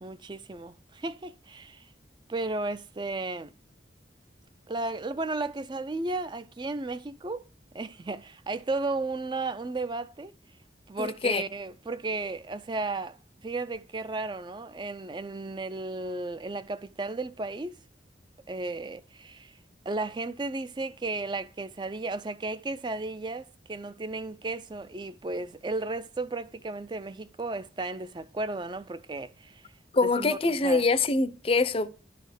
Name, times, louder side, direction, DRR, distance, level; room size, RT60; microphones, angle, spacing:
voice 1, 0.0-1.9 2.3-3.5 4.7-7.5 7.7-10.3 10.9-13.2 13.4-17.8 18.5-19.5 19.9-29.7 30.0-30.8, right 2 dB, 25° right, 0.4 m, -34 dB
voice 2, 11.0-11.4 29.9-31.9, left 3 dB, 30° left, 0.5 m, -24 dB
11.0 x 4.3 x 6.6 m
head